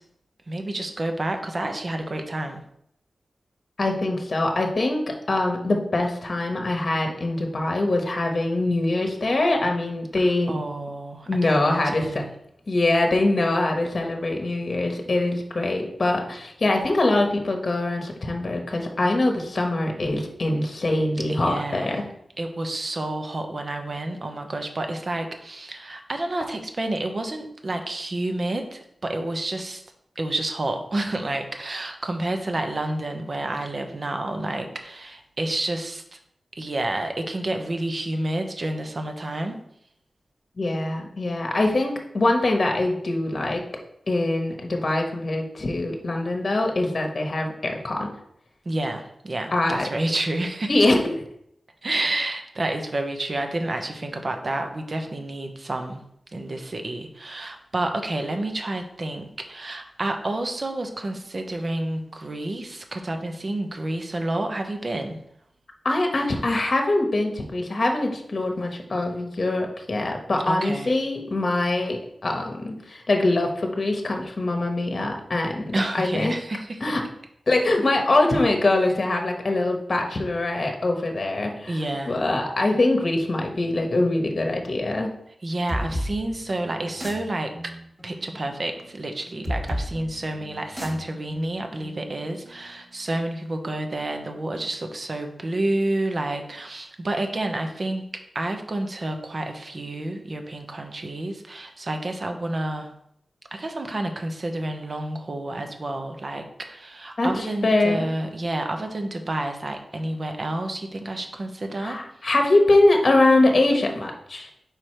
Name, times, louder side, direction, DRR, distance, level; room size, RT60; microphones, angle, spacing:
voice 1, 0.5-2.6 10.2-12.3 21.3-22.0 22.4-29.8 30.2-36.2 36.6-39.6 48.6-50.7 51.8-56.0 56.3-65.2 70.5-70.9 75.7-76.9 81.7-82.2 85.4-87.7 88.0-98.0 98.3-102.9 103.5-112.0, right 1 dB, 45° right, 5 dB, 0.8 m, -29 dB
voice 2, 3.8-10.5 11.3-12.2 12.7-22.0 40.6-43.6 44.1-48.1 49.5-49.9 50.7-51.2 65.8-76.3 76.8-77.0 77.5-81.8 82.1-85.1 107.2-108.1 111.8-114.5, left 2 dB, 50° left, 3 dB, 1.0 m, -23 dB
sound 1, 85.7-93.1, equal, 15° right, 1.6 m, -35 dB
5.0 x 4.8 x 4.4 m, 0.73 s
wide cardioid pair, 85°, 0 cm